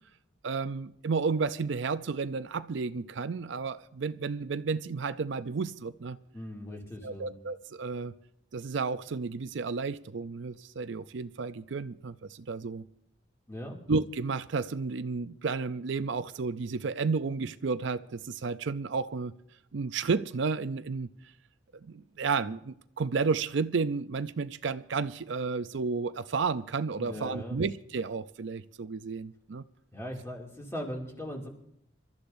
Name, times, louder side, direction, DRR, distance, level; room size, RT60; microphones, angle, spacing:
voice 1, 0.4-6.2 7.0-8.1 8.5-12.8 13.9-19.3 19.7-21.1 21.8-29.6, right 4 dB, 70° right, 0.5 m, -32 dB
voice 2, 6.3-7.3 13.5-13.8 27.0-27.6 29.9-31.5, equal, 15° left, 2.4 m, -39 dB
27.0 x 13.0 x 2.6 m
head